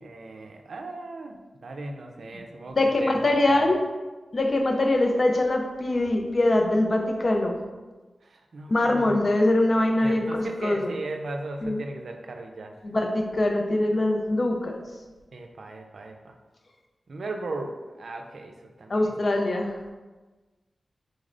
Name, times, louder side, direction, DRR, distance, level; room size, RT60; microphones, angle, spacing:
voice 1, 0.0-3.7 8.2-9.3 10.0-12.8 15.3-16.4 17.1-19.3, right 2 dB, 85° right, 3 dB, 0.4 m, -37 dB
voice 2, 2.7-3.8 4.3-7.6 8.7-11.0 11.6-11.8 12.8-14.8 18.9-19.8, left 1 dB, 55° left, 3 dB, 0.5 m, -23 dB
4.1 x 3.2 x 2.5 m, 1.2 s
wide cardioid pair, 70°, 0 cm